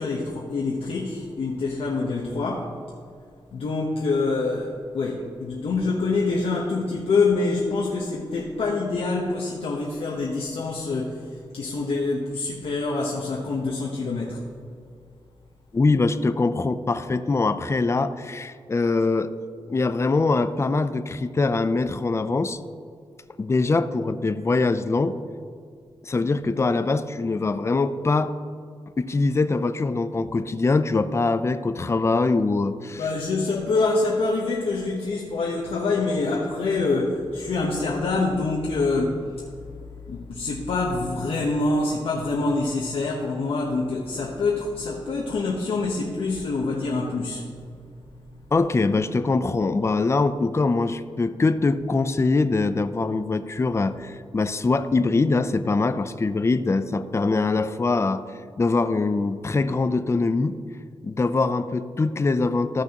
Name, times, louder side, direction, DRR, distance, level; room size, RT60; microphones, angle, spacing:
voice 1, 0.0-2.7 3.5-14.4 33.0-39.4 40.1-47.8 48.3-48.4, left 3 dB, 80° left, -3 dB, 1.0 m, -26 dB
voice 2, 15.7-19.3 19.7-22.6 23.4-25.2 26.0-28.3 29.0-33.1 48.5-58.2 58.6-60.6 61.0-62.8, left 3 dB, 30° left, 11 dB, 0.4 m, -23 dB
14.5 x 6.1 x 2.9 m, 2.3 s
cardioid pair, 75°, 10 cm